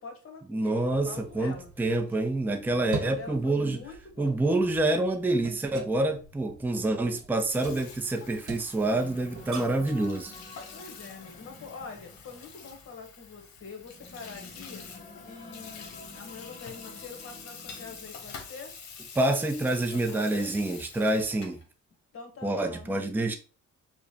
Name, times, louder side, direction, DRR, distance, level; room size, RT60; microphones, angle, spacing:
voice 1, 0.0-1.7 2.7-4.4 10.7-14.8 15.2-18.7 19.6-20.5 22.1-23.4, left 5 dB, 45° left, 1.2 m, -45 dB
voice 2, 0.5-3.8 4.2-10.3 19.2-21.6 22.4-23.3, right 2 dB, 5° right, 0.5 m, -27 dB
sound 1, 0.8-9.9, right 4 dB, 70° right, 0.8 m, -44 dB
Water tap faucet / Sink (filling or washing), 7.3-21.6, left 5 dB, 65° left, 0.9 m, -47 dB
sound 2, 8.6-18.4, left 2 dB, 25° left, 0.8 m, -50 dB
4.8 x 2.2 x 2.8 m
cardioid pair, 90°, 30 cm